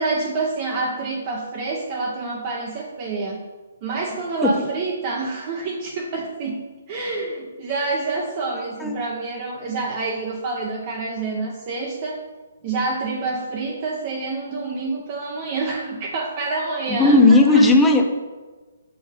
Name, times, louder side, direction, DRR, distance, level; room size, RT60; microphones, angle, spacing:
voice 1, 0.0-3.4 3.8-6.6 6.9-12.2 12.6-17.6, right 3 dB, 40° right, -2 dB, 0.8 m, -27 dB
voice 2, 16.9-18.1, left 2 dB, 10° left, 3 dB, 0.6 m, -14 dB
6.4 x 4.6 x 3.5 m, 1.3 s
hypercardioid pair, 140°, 0 cm